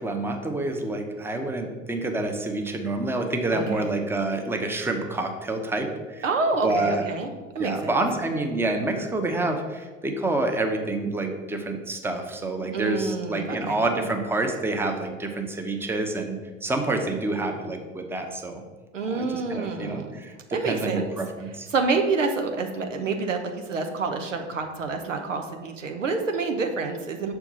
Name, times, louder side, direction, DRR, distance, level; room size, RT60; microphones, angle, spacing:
voice 1, 0.0-6.2 6.6-7.1 7.6-18.6 19.1-21.7, right 2 dB, 5° right, 4 dB, 0.8 m, -28 dB
voice 2, 3.5-3.9 6.2-8.0 12.7-13.9 18.9-20.1 20.5-21.1 21.7-27.3, right 4 dB, 80° right, 5 dB, 1.0 m, -28 dB
6.6 x 4.6 x 5.5 m, 1.3 s
figure-of-eight pair, 75°, 37 cm